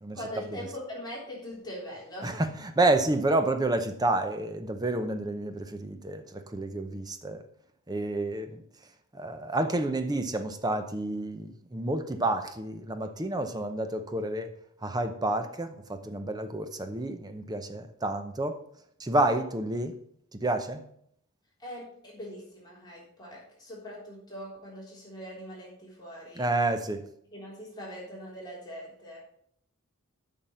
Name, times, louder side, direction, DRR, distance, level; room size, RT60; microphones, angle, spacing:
voice 1, 0.1-2.4 21.6-26.5 27.3-29.2, equal, 20° left, 3.6 m, -42 dB
voice 2, 2.2-7.4 7.9-8.6 9.1-14.5 14.8-18.6 19.0-19.9 20.3-20.8 26.4-27.0, right 2 dB, 20° right, 0.7 m, -29 dB
8.9 x 5.9 x 5.7 m
head